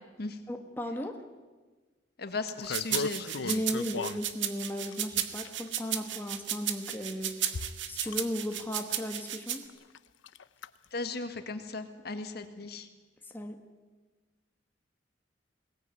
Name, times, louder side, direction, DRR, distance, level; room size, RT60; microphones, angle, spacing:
voice 1, 0.5-1.2 3.5-9.6 13.3-13.6, equal, 10° left, 4 dB, 1.6 m, -36 dB
voice 2, 2.2-3.6 10.9-12.9, left 3 dB, 55° left, 8 dB, 1.7 m, -37 dB
sound 1, 2.5-4.2 4.9-5.7 6.6-6.7 7.5-8.2 8.5-8.8 9.1-9.2 9.6-10.0 10.2-10.7 11.1-11.2, left 3 dB, 85° left, 0.7 m, -37 dB
sound 2, 2.7-9.6, right 11 dB, 80° right, 1.6 m, -34 dB
22.5 x 18.5 x 9.2 m, 1.3 s
head